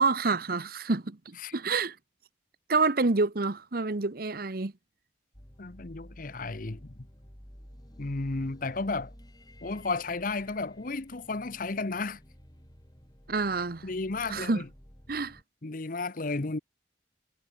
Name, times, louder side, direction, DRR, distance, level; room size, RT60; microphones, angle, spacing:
voice 1, 0.0-1.9 2.7-4.7 13.3-13.9 14.3-14.6 15.1-15.4, right 3 dB, 55° right, 1.0 m, -28 dB
sound 1, 5.3-15.4, equal, 20° left, 5.4 m, -52 dB
voice 2, 5.6-6.9 8.0-9.1 9.6-12.2 13.8-14.7 15.6-16.6, left 3 dB, 50° left, 0.9 m, -33 dB
head